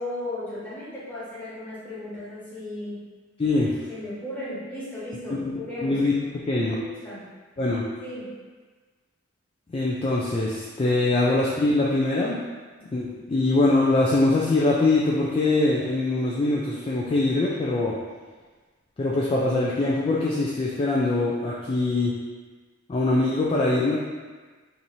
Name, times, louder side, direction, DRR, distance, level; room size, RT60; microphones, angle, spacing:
voice 1, 0.0-3.1 3.9-6.0 6.8-7.2 8.0-8.3, left 1 dB, 5° left, -10 dB, 1.1 m, -35 dB
voice 2, 3.4-3.8 5.4-5.5 5.8-6.1 6.4-6.8 7.6-7.8 9.7-12.4 12.9-18.0 19.0-22.1 22.9-24.0, left 2 dB, 25° left, -5 dB, 0.3 m, -23 dB
2.9 x 2.6 x 4.0 m, 1.4 s
head